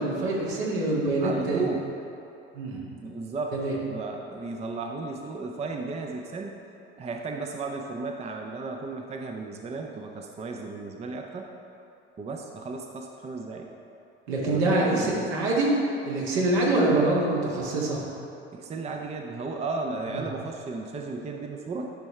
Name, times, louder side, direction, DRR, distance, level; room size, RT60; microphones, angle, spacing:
voice 1, 0.0-1.6 2.5-2.8 3.5-3.7 14.3-15.7 16.0-18.0 20.1-20.3, right 2 dB, 70° right, -4 dB, 1.7 m, -25 dB
voice 2, 1.2-1.9 3.0-3.6 3.9-6.5 6.9-11.5 12.2-13.7 14.4-15.4 18.5-21.9, right 3 dB, 20° right, 3 dB, 0.6 m, -34 dB
10.5 x 5.4 x 3.2 m, 2.8 s
figure-of-eight pair, 65°, 34 cm